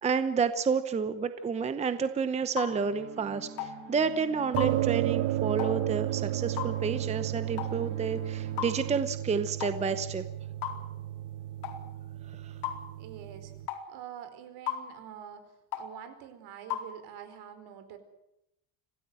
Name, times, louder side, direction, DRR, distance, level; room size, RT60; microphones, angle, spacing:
voice 1, 0.0-10.2 12.3-12.6, right 5 dB, 15° right, 11 dB, 0.8 m, -30 dB
sound 1, 2.6-2.7 3.6-3.8 4.6-4.7 5.6-5.8 6.6-6.8 7.6-7.8 8.6-8.7 9.6-9.8 10.6-10.8 11.6-11.8 12.6-12.8 13.7-13.9 14.7-14.9 15.7-15.9 16.7-16.9, left 11 dB, 85° left, 4.3 m, -34 dB
sound 2, 2.7-9.0, right 5 dB, 30° right, 2.7 m, -46 dB
sound 3, 4.5-13.7, right 14 dB, 50° right, 0.8 m, -33 dB
voice 2, 13.0-13.5 13.9-18.0, right 9 dB, 65° right, 9 dB, 4.5 m, -46 dB
26.5 x 17.0 x 7.8 m, 0.85 s
cardioid pair, 170°, 41 cm